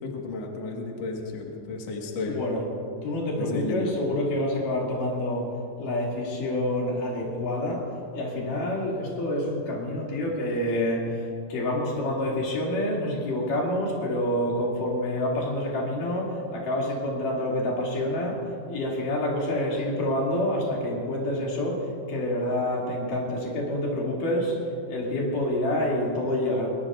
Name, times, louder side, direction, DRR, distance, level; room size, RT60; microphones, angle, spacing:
voice 1, 0.0-2.4 3.4-3.9 8.4-8.5, left 3 dB, 90° left, 0 dB, 1.4 m, -33 dB
voice 2, 2.2-2.7 3.0-5.5 5.8-18.4 18.7-24.6 24.9-26.7, left 1 dB, 50° left, -3 dB, 3.6 m, -27 dB
21.5 x 21.0 x 2.5 m, 2.7 s
omnidirectional pair, 5.6 m